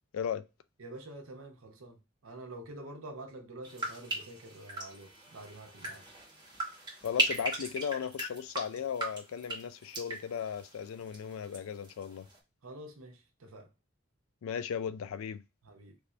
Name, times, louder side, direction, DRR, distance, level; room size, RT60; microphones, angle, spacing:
voice 1, 0.1-0.4 7.0-12.3 14.4-15.4, left 7 dB, 85° left, 0.3 m, -36 dB
voice 2, 0.8-6.0 12.6-13.7 15.6-16.0, right 1 dB, 85° right, 0.8 m, -47 dB
sound 1, 3.6-11.6 11.8-12.4, right 2 dB, 20° right, 1.1 m, -37 dB
3.4 x 2.5 x 3.1 m
head